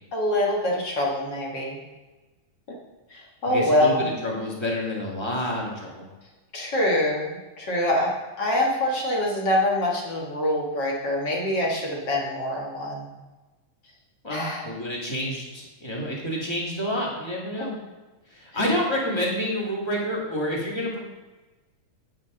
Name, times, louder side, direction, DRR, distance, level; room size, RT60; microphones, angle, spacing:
voice 1, 0.1-1.8 3.1-4.0 6.5-13.1 14.3-14.7, left 1 dB, 50° left, -2 dB, 1.4 m, -25 dB
voice 2, 3.5-6.1 14.2-17.7 18.3-21.0, equal, 20° left, -3 dB, 0.7 m, -28 dB
10.5 x 8.8 x 3.7 m, 1.2 s
omnidirectional pair, 4.0 m